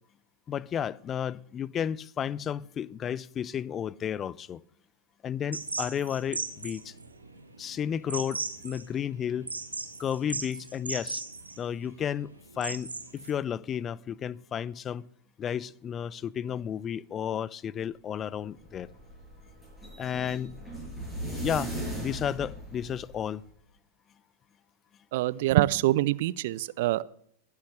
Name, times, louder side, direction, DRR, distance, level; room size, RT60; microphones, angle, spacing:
voice 1, 0.5-4.6 5.2-6.9 7.6-9.5 10.0-11.2 11.6-15.1 15.4-18.9 20.0-20.5 21.4-23.4, left 9 dB, 25° left, 0.4 m, -32 dB
sound 1, 5.5-13.3, right 3 dB, 80° right, 1.6 m, -38 dB
sound 2, 18.4-23.4, right 1 dB, 10° left, 6.4 m, -38 dB
voice 2, 25.1-27.0, right 16 dB, 50° right, 0.4 m, -25 dB
21.0 x 8.4 x 3.3 m
figure-of-eight pair, 90°, 0 cm